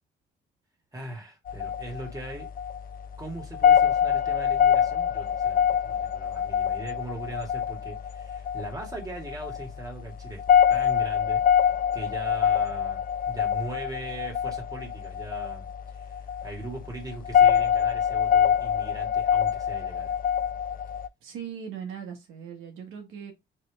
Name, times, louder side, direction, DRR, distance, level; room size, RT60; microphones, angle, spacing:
voice 1, 0.9-2.5 3.2-10.4 10.7-15.7 16.0-16.1 16.4-20.1, right 2 dB, 20° right, 1.9 m, -40 dB
approaching ceres, 1.5-21.1, left 8 dB, 45° left, 0.4 m, -25 dB
voice 2, 21.2-23.3, right 7 dB, 85° right, 1.2 m, -39 dB
3.3 x 3.0 x 3.4 m
cardioid pair, 90°, 20 cm